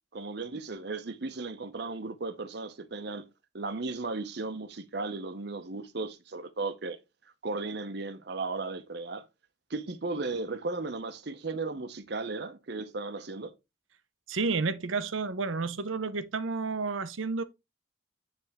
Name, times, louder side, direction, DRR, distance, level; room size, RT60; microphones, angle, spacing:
voice 1, 0.1-3.2 3.5-7.0 7.4-9.3 9.7-13.5, right 3 dB, 55° right, 0.8 m, -35 dB
voice 2, 14.3-17.4, right 4 dB, 85° right, 0.7 m, -31 dB
9.6 x 3.5 x 3.4 m
head